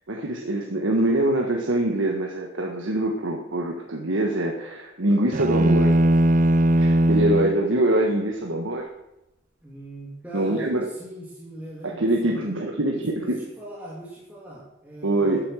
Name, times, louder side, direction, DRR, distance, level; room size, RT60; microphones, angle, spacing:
voice 1, 0.1-5.9 6.8-8.9 10.3-10.9 11.8-13.4 15.0-15.5, right 1 dB, 80° right, 1 dB, 1.5 m, -24 dB
sound 1, 5.3-7.6, right 1 dB, 45° right, 0.5 m, -19 dB
voice 2, 9.6-12.5 12.9-15.5, right 1 dB, 10° right, -6 dB, 2.8 m, -40 dB
13.0 x 8.6 x 6.4 m, 0.89 s
head